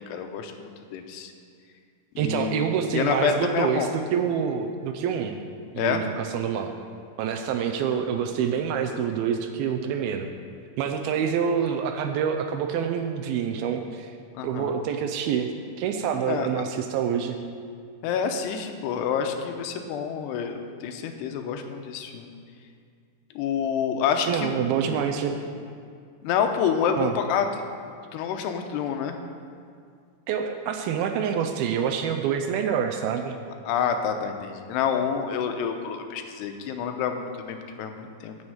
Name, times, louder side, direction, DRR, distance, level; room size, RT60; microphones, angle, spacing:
voice 1, 0.0-1.3 2.2-2.7 2.9-3.9 5.8-6.1 14.3-14.7 16.3-16.7 18.0-22.3 23.4-25.1 26.2-27.5 28.1-29.2 33.7-38.4, left 7 dB, 90° left, 5 dB, 2.9 m, -28 dB
voice 2, 2.2-5.4 5.7-6.7 7.2-10.3 10.8-14.1 14.4-15.5 15.8-17.4 24.3-25.4 27.0-27.1 30.3-33.4, right 7 dB, 80° right, 5 dB, 2.3 m, -26 dB
9.6 x 7.2 x 7.9 m, 2.3 s
omnidirectional pair, 4.7 m